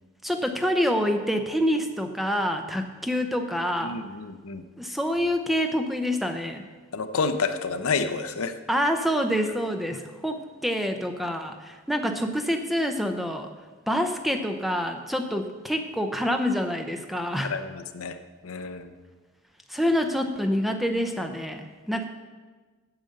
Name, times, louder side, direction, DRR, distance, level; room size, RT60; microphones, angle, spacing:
voice 1, 0.2-4.0 4.8-6.6 8.7-13.5 13.9-17.5 19.7-22.0, equal, ahead, 5 dB, 0.6 m, -27 dB
voice 2, 3.8-4.6 6.9-8.5 9.3-9.5 9.9-10.0 17.4-18.2 18.4-18.9, left 4 dB, 85° left, 9 dB, 0.7 m, -29 dB
8.9 x 7.7 x 6.6 m, 1.4 s
head